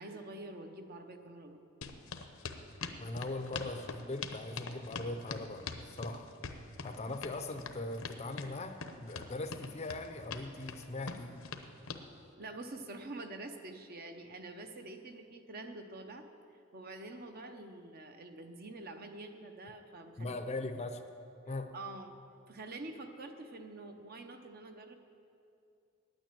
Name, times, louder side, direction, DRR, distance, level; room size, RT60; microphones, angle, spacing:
voice 1, 0.0-1.6 12.4-16.3 16.7-20.4 21.7-22.2 22.5-24.9, right 2 dB, 45° right, 6 dB, 0.9 m, -46 dB
sound 1, 1.8-12.0, left 5 dB, 80° left, 0.8 m, -43 dB
voice 2, 3.0-6.3 6.8-11.4 20.2-21.0 21.5-21.7, left 2 dB, 30° left, 8 dB, 0.6 m, -40 dB
9.6 x 9.0 x 9.0 m, 2.5 s
head